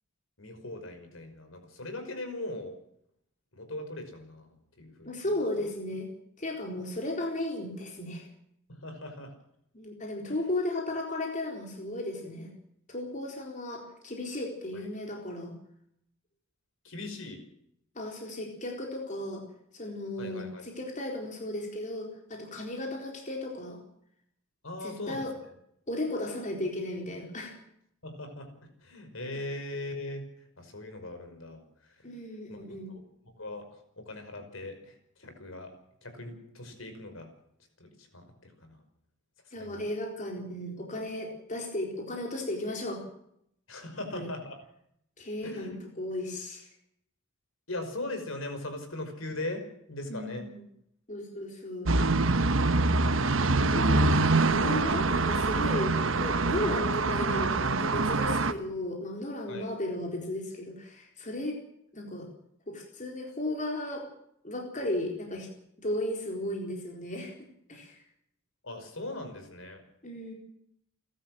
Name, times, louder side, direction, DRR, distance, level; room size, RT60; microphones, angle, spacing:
voice 1, 0.4-2.8 3.5-5.2 5.6-5.7 8.7-9.3 10.3-10.4 16.8-17.4 20.2-20.7 24.6-25.3 28.0-28.5 28.8-32.0 32.5-33.0 33.4-35.7 36.0-37.3 37.8-38.8 39.6-39.8 43.7-44.6 45.4-45.8 47.7-49.6 49.9-50.4 53.5-53.8 59.5-59.7 68.6-69.8, left 2 dB, 70° left, 7 dB, 5.4 m, -40 dB
voice 2, 5.0-6.1 6.4-8.3 9.7-12.5 12.9-15.5 18.0-19.4 19.7-23.8 24.8-25.3 25.9-27.5 32.0-32.9 39.5-43.0 44.1-44.3 45.2-46.7 50.1-50.6 51.1-51.9 53.2-54.1 54.5-61.6 61.9-62.3 62.7-64.1 64.4-65.5 65.8-68.0 70.0-70.3, left 1 dB, 35° left, 1 dB, 4.2 m, -35 dB
sound 1, 51.8-58.5, right 3 dB, 65° right, 1.2 m, -25 dB
30.0 x 12.5 x 7.7 m, 0.73 s
head